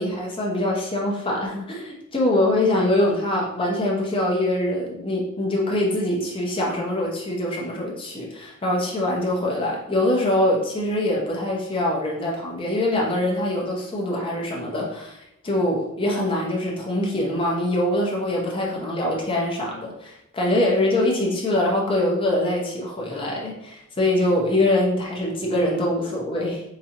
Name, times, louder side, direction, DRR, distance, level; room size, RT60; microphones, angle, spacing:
voice 1, 0.0-26.6, left 1 dB, 25° left, -2 dB, 0.6 m, -24 dB
4.8 x 2.6 x 2.8 m, 0.83 s
head